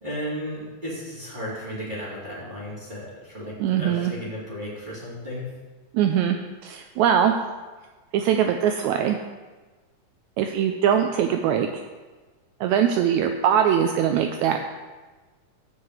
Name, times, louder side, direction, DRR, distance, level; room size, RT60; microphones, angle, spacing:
voice 1, 0.0-5.5, equal, 15° right, -11 dB, 2.4 m, -34 dB
voice 2, 3.6-4.1 5.9-6.4 6.6-7.3 8.1-9.2 10.4-11.8 12.6-14.6, right 9 dB, 85° right, 5 dB, 1.6 m, -21 dB
11.0 x 4.8 x 8.0 m, 1.3 s
omnidirectional pair, 3.9 m